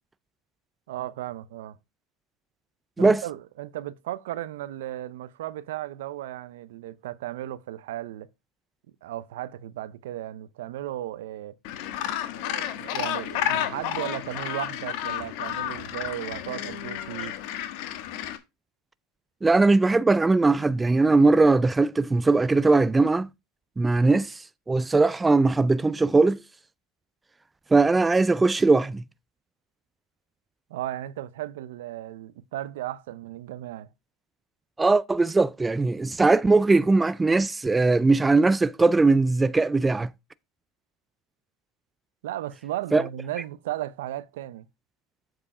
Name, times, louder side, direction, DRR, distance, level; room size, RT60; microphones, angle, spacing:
voice 1, 0.9-1.8 3.0-8.3 9.0-11.6 12.3-17.3 30.7-33.9 42.2-44.7, right 13 dB, 80° right, 0.6 m, -35 dB
Gull seagull, 11.6-18.4, left 11 dB, 65° left, 1.2 m, -31 dB
voice 2, 19.4-23.3 23.8-24.3 24.7-26.4 27.7-29.0 34.8-40.1 42.9-43.0, right 3 dB, 15° right, 0.4 m, -20 dB
7.7 x 4.7 x 4.8 m
hypercardioid pair, 100°, 0 cm